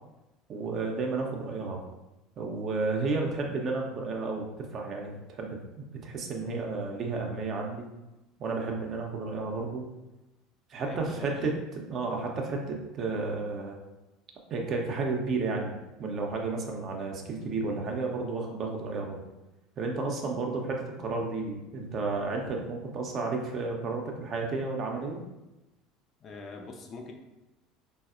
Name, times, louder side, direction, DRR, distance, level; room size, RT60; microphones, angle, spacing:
voice 1, 0.5-1.8 2.4-4.5 4.7-7.9 8.4-9.9 10.7-11.5 11.9-13.8 14.5-19.2 19.8-25.2, right 3 dB, 45° right, 1 dB, 0.5 m, -32 dB
voice 2, 10.8-11.6 26.2-27.1, left 4 dB, 40° left, 2 dB, 0.4 m, -43 dB
3.9 x 2.0 x 2.4 m, 1.0 s
figure-of-eight pair, 70°, 0 cm